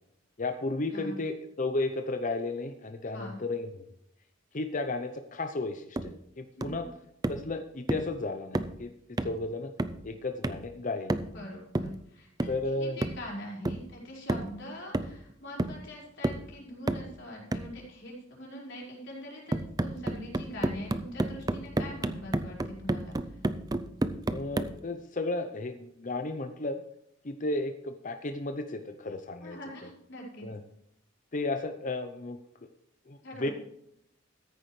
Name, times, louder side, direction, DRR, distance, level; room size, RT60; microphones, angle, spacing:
voice 1, 0.4-3.7 4.5-6.9 7.3-8.9 9.2-9.7 10.0-11.5 12.5-13.0 24.3-26.8 27.2-29.6 30.4-30.6 31.3-32.4 33.1-33.5, left 2 dB, 40° left, 7 dB, 0.7 m, -33 dB
sound 1, 6.0-6.2 6.6-6.8 7.2-7.5 7.9-8.1 8.5-8.8 9.2-9.4 9.8-10.1 10.4-10.7 11.1-11.4 11.7-12.0 12.4-12.7 13.0-13.3 13.6-13.9 14.3-14.6 14.9-15.3 15.6-15.9 16.2-16.5 16.9-17.1 17.5-17.8 19.5-24.8, right 1 dB, 20° right, 0.5 m, -31 dB
voice 2, 6.6-6.9 11.3-23.4 29.4-30.5 33.2-33.5, left 1 dB, 60° left, -4 dB, 5.0 m, -43 dB
14.0 x 10.0 x 3.3 m, 0.76 s
head